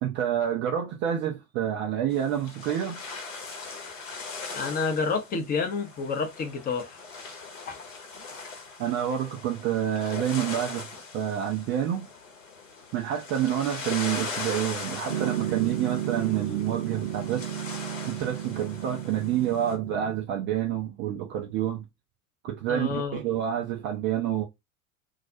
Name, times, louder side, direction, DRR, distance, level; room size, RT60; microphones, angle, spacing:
voice 1, 0.0-3.0 8.8-12.1 12.9-17.5 18.1-21.8 22.4-24.5, right 10 dB, 30° right, 0.4 m, -28 dB
sound 1, 2.1-19.7, left 4 dB, 65° left, 0.9 m, -40 dB
voice 2, 4.5-7.0 7.7-7.8 22.7-23.2, left 5 dB, 20° left, 0.6 m, -29 dB
Piano, 15.1-20.2, right 11 dB, 55° right, 0.9 m, -33 dB
2.3 x 2.0 x 2.6 m
figure-of-eight pair, 80°, 42 cm